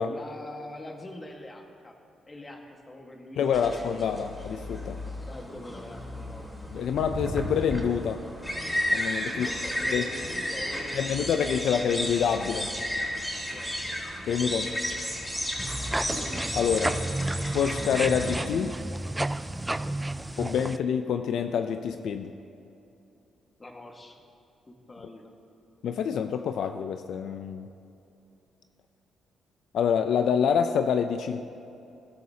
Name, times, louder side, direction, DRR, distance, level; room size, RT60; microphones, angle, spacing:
voice 1, 0.0-2.0 2.2-4.1 5.3-6.5 9.3-11.9 13.5-14.0 19.6-20.0 20.6-20.8 23.6-24.2 24.7-25.3 26.0-26.1, left 1 dB, 25° left, 2 dB, 1.6 m, -44 dB
voice 2, 3.4-5.0 6.7-8.2 8.9-9.5 9.9-10.1 10.9-12.7 14.3-14.8 16.5-17.0 17.5-18.8 20.4-22.3 25.8-27.7 29.7-31.4, left 7 dB, 75° left, 8 dB, 0.5 m, -27 dB
sound 1, 3.5-18.4, equal, 5° left, 3.7 m, -33 dB
sound 2, 15.6-20.8, right 1 dB, 10° right, 0.4 m, -32 dB
21.0 x 12.5 x 2.8 m, 2.7 s
cardioid pair, 90°, 0 cm